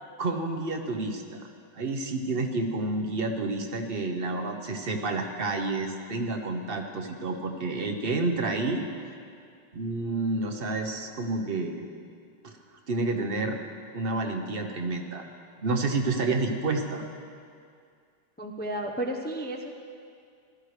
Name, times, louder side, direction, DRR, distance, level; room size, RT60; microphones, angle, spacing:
voice 1, 0.2-1.5 1.7-8.8 9.7-11.8 12.4-12.6 12.9-13.6 13.9-15.2 15.6-17.0, right 3 dB, 55° right, 4 dB, 1.0 m, -29 dB
voice 2, 18.4-19.7, right 1 dB, 15° left, 1 dB, 0.4 m, -32 dB
16.5 x 12.5 x 3.3 m, 2.3 s
omnidirectional pair, 1.2 m